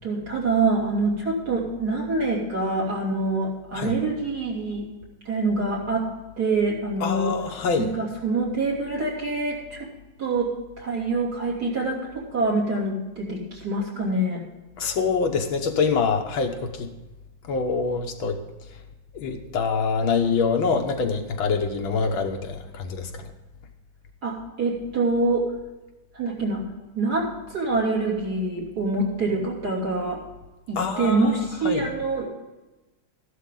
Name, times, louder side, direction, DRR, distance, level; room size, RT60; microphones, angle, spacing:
voice 1, 0.0-4.9 5.2-6.1 6.4-7.4 7.8-9.9 10.2-14.4 24.2-25.5 26.1-26.6 26.9-30.2 30.7-32.3, right 3 dB, 50° right, -4 dB, 3.5 m, -25 dB
voice 2, 7.0-7.9 14.8-16.9 17.5-18.4 19.1-23.3 30.8-31.3 31.6-31.9, left 5 dB, 80° left, 4 dB, 1.9 m, -25 dB
14.0 x 11.5 x 3.8 m, 1.1 s
omnidirectional pair, 2.2 m